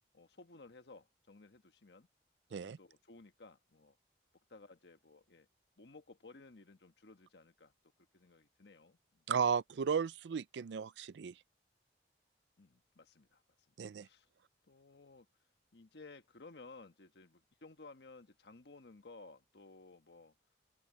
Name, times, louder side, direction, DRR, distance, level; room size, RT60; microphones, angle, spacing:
voice 1, 0.1-2.1 2.6-4.0 4.5-5.5 5.8-7.7 8.1-9.2 12.6-13.4 13.8-14.3 14.7-15.3 15.7-20.3, left 3 dB, 80° left, 1.2 m, -57 dB
voice 2, 9.3-11.3 13.8-14.1, right 6 dB, 90° right, 0.4 m, -34 dB
open air
head